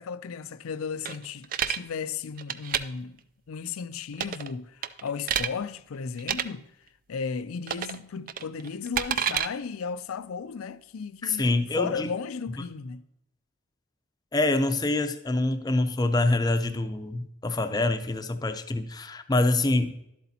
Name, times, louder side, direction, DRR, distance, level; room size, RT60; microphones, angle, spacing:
voice 1, 0.0-3.2 3.5-6.7 7.1-13.0, left 5 dB, 90° left, 0.4 m, -35 dB
sound 1, 1.1-1.8 2.4-2.8 4.1-4.5 4.8-5.5 6.2-6.4 7.7-8.0 8.3-9.5, right 9 dB, 40° right, 0.3 m, -28 dB
voice 2, 11.2-12.1 14.3-19.9, left 2 dB, 20° left, 0.5 m, -25 dB
11.5 x 8.0 x 2.8 m
head